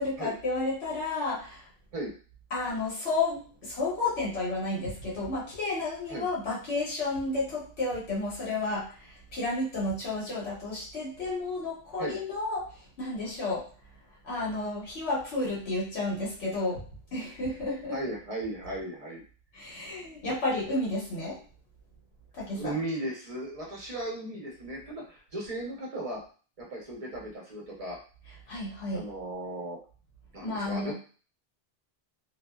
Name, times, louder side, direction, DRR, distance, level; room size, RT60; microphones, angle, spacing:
voice 1, 0.0-1.6 2.5-12.7 13.0-13.7 14.2-16.8 17.1-18.0 19.5-21.4 22.3-22.7 28.5-29.1 30.4-30.9, left 2 dB, 85° left, -5 dB, 1.2 m, -31 dB
voice 2, 17.9-19.2 22.5-26.2 26.6-28.0 28.9-29.8 30.3-30.9, right 1 dB, 40° right, -3 dB, 0.8 m, -36 dB
2.6 x 2.2 x 2.2 m, 0.39 s
omnidirectional pair, 1.1 m